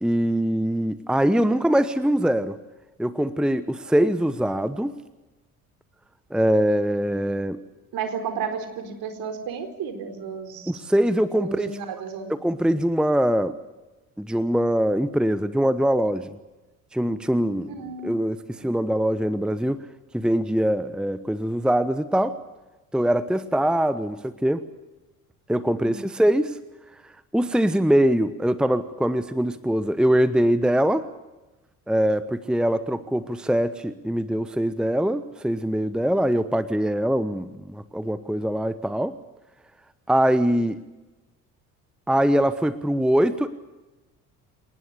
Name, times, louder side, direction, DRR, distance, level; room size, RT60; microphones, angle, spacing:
voice 1, 0.0-2.6 3.0-5.0 6.3-7.6 10.7-11.7 12.3-13.5 14.2-16.4 16.9-17.7 18.0-19.8 20.1-22.4 22.9-24.6 25.5-26.6 27.3-31.0 31.9-39.1 40.1-40.8 42.1-43.5, equal, ahead, 13 dB, 1.1 m, -23 dB
voice 2, 7.9-10.8 11.3-12.4 17.7-18.2 18.6-18.7 25.8-26.1, right 6 dB, 50° right, 8 dB, 4.3 m, -33 dB
28.0 x 19.5 x 6.9 m, 1.1 s
figure-of-eight pair, 55°, 44 cm